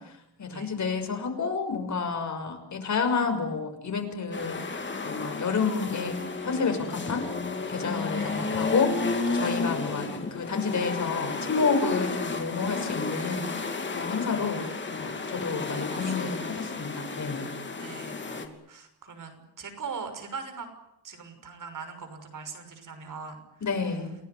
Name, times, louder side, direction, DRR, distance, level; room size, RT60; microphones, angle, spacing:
voice 1, 0.4-4.6 5.0-7.3 7.7-13.5 13.9-17.5 23.6-24.1, left 4 dB, 45° left, 5 dB, 6.3 m, -30 dB
sound 1, 4.3-18.4, left 4 dB, 30° left, 3.0 m, -32 dB
voice 2, 8.1-8.5 14.2-14.5 15.7-16.5 17.8-20.7 21.0-24.0, right 5 dB, 50° right, 8 dB, 6.2 m, -41 dB
29.5 x 18.0 x 9.7 m, 0.82 s
wide cardioid pair, 155°, 39 cm